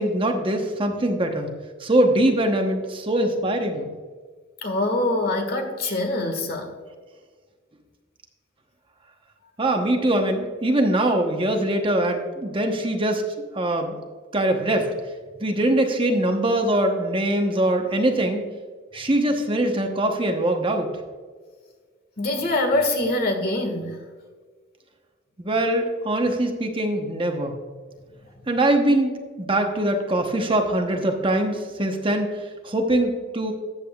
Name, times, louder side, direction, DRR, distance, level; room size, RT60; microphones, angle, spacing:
voice 1, 0.0-1.5 1.8-3.9 9.6-13.2 13.5-14.0 14.3-14.9 15.4-18.5 18.9-20.9 25.4-27.6 28.5-29.1 29.4-33.5, right 1 dB, 30° right, 3 dB, 1.0 m, -22 dB
voice 2, 4.6-6.7 22.2-24.0, left 2 dB, 55° left, 5 dB, 1.7 m, -24 dB
13.5 x 8.4 x 2.4 m, 1.5 s
head